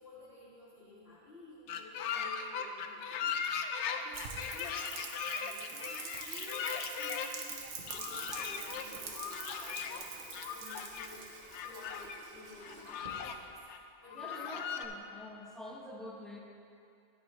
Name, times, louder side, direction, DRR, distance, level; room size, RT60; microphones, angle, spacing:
voice 1, 0.0-6.7 7.0-11.2 11.6-13.5 14.0-14.4, left 2 dB, 60° left, -12 dB, 2.3 m, -53 dB
sound 1, 1.7-7.3 7.9-8.9 9.1-10.1 10.3-11.1 11.5-12.2 12.6-13.4 13.7-13.8 14.1-14.9, left 7 dB, 75° left, 0.9 m, -38 dB
Rain, 4.1-12.2, right 5 dB, 80° right, 1.2 m, -45 dB
Water tap faucet / Sink (filling or washing), 7.5-13.8, right 2 dB, 45° right, 1.1 m, -54 dB
voice 2, 14.1-16.4, left 1 dB, ahead, -2 dB, 0.9 m, -46 dB
10.0 x 10.0 x 3.1 m, 2.5 s
omnidirectional pair, 1.2 m